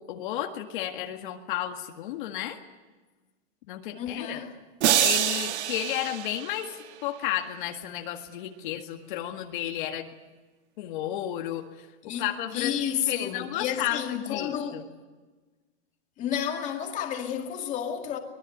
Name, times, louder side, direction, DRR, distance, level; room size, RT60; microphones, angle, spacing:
voice 1, 0.0-2.6 3.7-4.4 5.0-10.1 10.8-14.8, left 12 dB, 50° left, 1.9 m, -33 dB
voice 2, 3.9-4.5 12.0-14.8 16.2-18.2, left 9 dB, 20° left, 2.3 m, -31 dB
sound 1, 4.8-7.1, right 12 dB, 80° right, 1.5 m, -26 dB
24.5 x 20.5 x 9.3 m
supercardioid pair, 170°, 33 cm